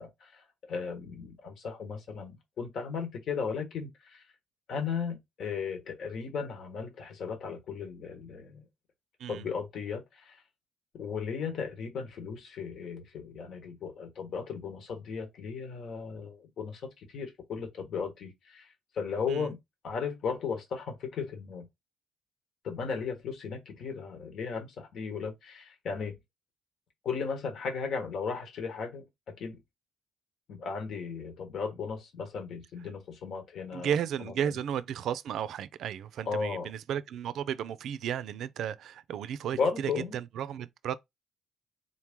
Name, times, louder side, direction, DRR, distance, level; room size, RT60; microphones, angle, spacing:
voice 1, 0.0-4.3 4.7-8.7 9.3-10.4 10.9-19.6 19.8-21.7 22.6-26.1 27.0-29.6 30.5-33.9 34.2-34.5 36.3-36.7 39.5-40.2, left 5 dB, 70° left, 1.3 m, -36 dB
voice 2, 33.7-40.9, right 9 dB, 75° right, 0.4 m, -34 dB
4.0 x 3.0 x 3.6 m
cardioid pair, 90°, 0 cm